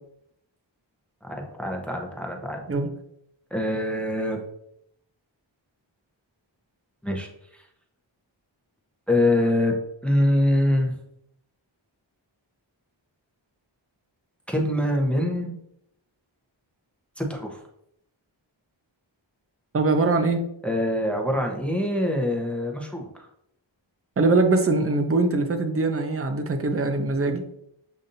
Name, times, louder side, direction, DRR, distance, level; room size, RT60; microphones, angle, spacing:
voice 1, 1.2-2.6 3.5-4.4 7.0-7.3 9.1-9.7 10.0-10.9 14.5-15.5 17.2-17.6 20.6-23.3, left 1 dB, ahead, 2 dB, 0.8 m, -24 dB
voice 2, 19.7-20.4 24.2-27.4, right 3 dB, 30° right, 7 dB, 0.5 m, -22 dB
6.9 x 2.6 x 2.6 m, 0.75 s
wide cardioid pair, 50°, 47 cm